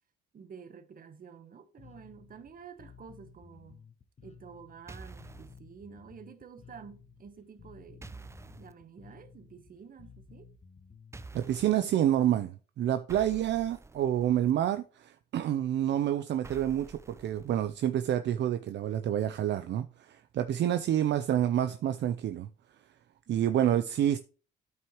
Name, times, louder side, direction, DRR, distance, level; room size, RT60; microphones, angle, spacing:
voice 1, 0.3-3.9 4.2-8.3 8.5-10.5, right 6 dB, 45° right, 1.1 m, -50 dB
Bass guitar, 1.8-11.2, left 5 dB, 35° left, 0.9 m, -55 dB
sound 1, 4.9-5.6 8.0-8.7 11.1-11.8 13.1-14.5 16.4-17.9, right 3 dB, 15° right, 0.5 m, -48 dB
voice 2, 11.3-22.5 23.3-24.2, right 11 dB, 65° right, 0.5 m, -28 dB
12.5 x 4.7 x 3.0 m
cardioid pair, 90°, 20 cm